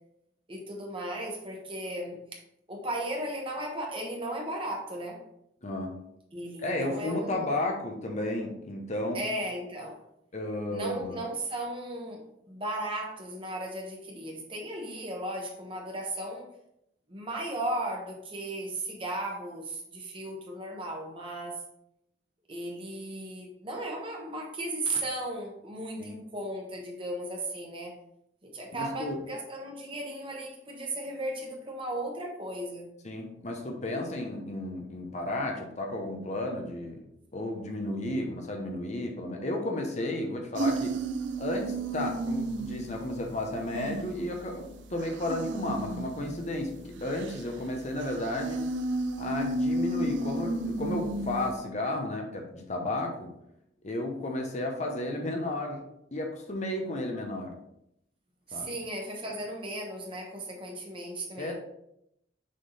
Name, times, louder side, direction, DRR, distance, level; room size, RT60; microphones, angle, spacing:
voice 1, 0.5-2.2 2.7-5.2 6.3-7.5 9.1-10.0 10.7-16.5 17.1-21.6 22.5-27.9 28.5-32.9 58.5-61.5, right 1 dB, 30° right, 0 dB, 1.3 m, -36 dB
voice 2, 5.6-6.0 6.6-9.3 10.3-11.2 26.0-26.2 28.7-29.2 33.0-37.1 37.3-41.0 41.4-48.6 49.2-53.3 53.8-55.8 56.1-57.6 58.5-58.8 61.4-61.5, left 1 dB, 40° left, 2 dB, 0.8 m, -33 dB
sound 1, 40.6-51.5, right 2 dB, 75° right, 0.6 m, -33 dB
6.4 x 3.7 x 4.1 m, 0.78 s
head